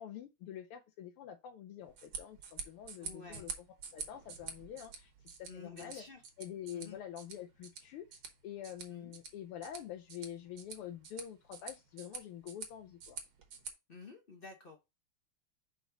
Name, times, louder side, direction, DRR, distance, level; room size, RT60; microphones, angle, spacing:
voice 1, 0.0-3.5 3.9-6.0 6.4-8.2 8.4-13.2, left 10 dB, 85° left, 1.6 m, -46 dB
sound 1, 1.8-13.7, right 6 dB, 70° right, 1.9 m, -48 dB
voice 2, 3.0-3.5 5.5-6.2 6.7-7.0 8.9-9.1 13.9-14.8, left 4 dB, 60° left, 0.5 m, -51 dB
5.1 x 3.9 x 5.0 m
omnidirectional pair, 2.4 m